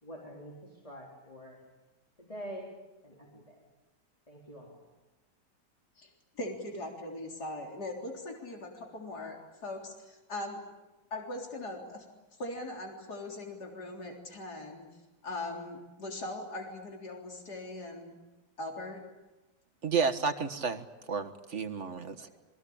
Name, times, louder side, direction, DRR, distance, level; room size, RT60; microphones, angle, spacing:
voice 1, 0.0-1.6 2.2-2.7 3.0-3.6 4.3-4.8, equal, 20° left, -1 dB, 4.2 m, -46 dB
voice 2, 6.4-10.6 11.1-12.1 12.4-14.8 15.2-18.2 18.6-19.0 22.2-22.3, left 2 dB, 65° left, 1 dB, 4.3 m, -40 dB
voice 3, 19.8-22.3, right 5 dB, 45° right, 9 dB, 1.6 m, -32 dB
27.0 x 22.0 x 8.7 m, 1.1 s
omnidirectional pair, 1.9 m